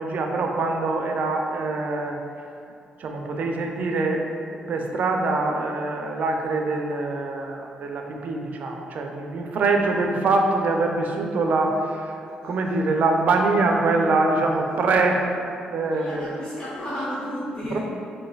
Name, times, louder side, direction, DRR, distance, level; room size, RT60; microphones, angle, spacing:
voice 1, 0.0-2.2 3.0-15.3 15.7-16.4 17.7-17.8, right 3 dB, 60° right, 2 dB, 0.4 m, -24 dB
voice 2, 15.9-17.8, equal, 30° left, -9 dB, 0.7 m, -32 dB
5.5 x 2.6 x 2.3 m, 2.5 s
cardioid pair, 100°, 3 cm